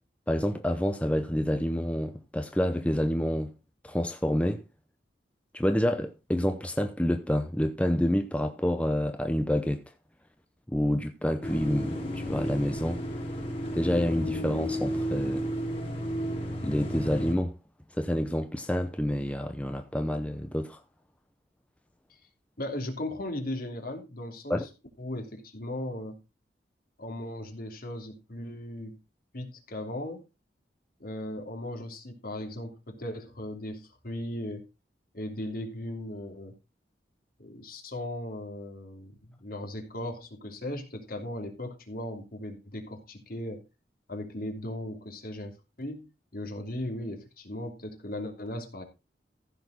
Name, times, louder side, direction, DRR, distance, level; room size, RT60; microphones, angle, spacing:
voice 1, 0.3-3.5 3.8-4.6 5.5-9.8 10.7-13.0 13.7-15.4 16.6-17.5 18.0-20.8 24.5-24.6, equal, 5° left, 0.7 m, -28 dB
sound 1, 11.4-17.3, equal, 35° left, 3.6 m, -32 dB
voice 2, 22.6-24.7 25.0-26.2 27.0-29.0 29.3-30.2 31.0-34.6 35.1-36.5 37.4-43.6 44.1-45.5 45.8-46.1 46.3-48.8, left 1 dB, 55° left, 3.0 m, -37 dB
15.0 x 6.6 x 4.1 m
head